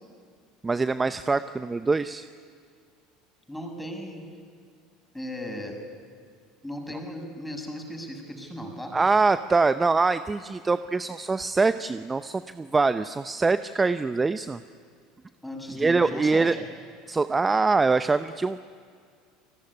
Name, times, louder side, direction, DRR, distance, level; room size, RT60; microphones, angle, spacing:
voice 1, 0.6-2.3 8.9-14.6 15.7-16.5 17.1-18.6, right 3 dB, 20° right, 12 dB, 0.7 m, -24 dB
voice 2, 3.5-4.2 5.1-5.8 6.6-8.9 15.4-16.5, left 1 dB, 5° left, 2 dB, 6.7 m, -36 dB
30.0 x 19.0 x 9.9 m, 2.1 s
hypercardioid pair, 75°, 0 cm